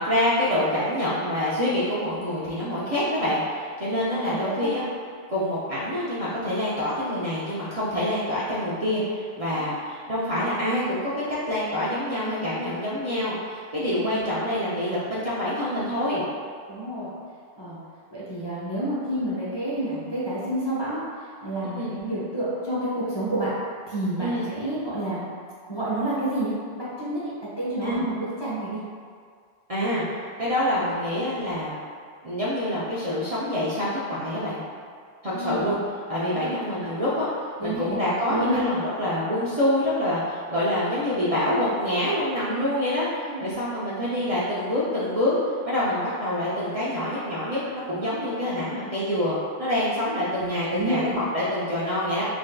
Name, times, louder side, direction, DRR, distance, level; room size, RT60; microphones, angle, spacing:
voice 1, 0.0-4.8 5.3-16.2 21.6-21.9 24.2-24.4 27.8-28.0 29.7-30.0 30.4-31.8 32.2-34.6 35.2-35.8 36.1-37.3 37.6-45.3 45.7-52.3, left 1 dB, 40° right, -10 dB, 0.5 m, -26 dB
voice 2, 4.2-4.7 9.5-9.6 14.0-14.2 16.7-17.1 17.6-17.8 18.1-21.0 21.4-23.5 23.9-25.2 25.7-28.8 35.3-35.7 36.3-36.5 36.8-36.9 37.6-38.0 38.2-38.6 43.3-43.5 50.4-50.5 50.7-51.0, right 1 dB, 25° left, -10 dB, 0.7 m, -29 dB
5.8 x 2.6 x 2.2 m, 2.1 s
omnidirectional pair, 1.2 m